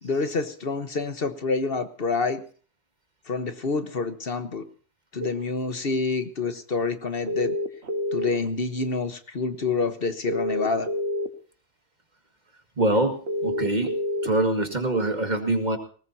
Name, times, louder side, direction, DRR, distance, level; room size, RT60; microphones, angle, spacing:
voice 1, 0.0-2.4 3.3-4.6 5.1-7.6 8.1-10.9, left 4 dB, 55° left, 9 dB, 1.4 m, -27 dB
sound 1, 5.2-5.3 7.3-8.5 10.3-11.3 13.3-14.3, left 1 dB, 70° right, 1.8 m, -27 dB
voice 2, 12.8-14.0 14.2-15.8, right 2 dB, 40° right, 5 dB, 2.1 m, -24 dB
20.0 x 18.5 x 2.8 m, 0.41 s
omnidirectional pair, 1.2 m